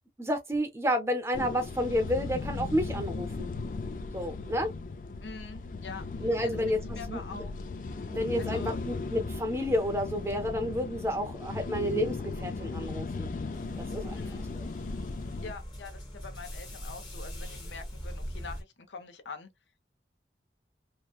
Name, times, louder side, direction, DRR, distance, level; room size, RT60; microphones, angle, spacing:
voice 1, 0.2-3.5 4.1-4.7 6.2-6.8 7.1-7.4 8.1-13.3 13.8-14.2 14.6-14.7, equal, 15° right, 0.6 m, -30 dB
sound 1, 1.3-15.5, left 3 dB, 45° left, 0.3 m, -37 dB
voice 2, 5.2-7.5 8.4-8.8 14.1-14.5 15.4-19.5, left 4 dB, 90° left, 0.7 m, -44 dB
sound 2, 13.5-18.6, equal, 25° left, 0.9 m, -41 dB
3.0 x 2.1 x 2.3 m
head